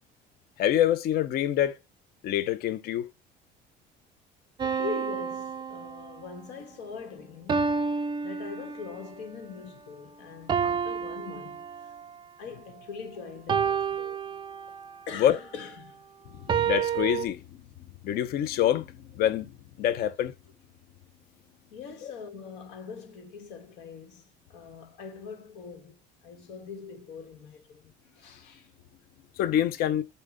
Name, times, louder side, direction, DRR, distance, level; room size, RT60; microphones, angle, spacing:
voice 1, 0.6-1.8 2.2-3.1 15.2-15.4 16.6-17.4 18.0-19.5 19.8-20.3 22.0-22.1 29.4-30.0, left 11 dB, 60° left, 0.7 m, -26 dB
voice 2, 4.6-7.8 8.2-11.6 12.4-14.2 15.1-16.0 21.7-28.7, left 5 dB, 90° left, 1.9 m, -42 dB
sound 1, 4.6-6.4 7.5-9.1 10.5-12.2 13.5-15.0 16.5-17.3, right 6 dB, 25° right, 0.5 m, -30 dB
7.8 x 2.8 x 5.0 m
cardioid pair, 140°, 18 cm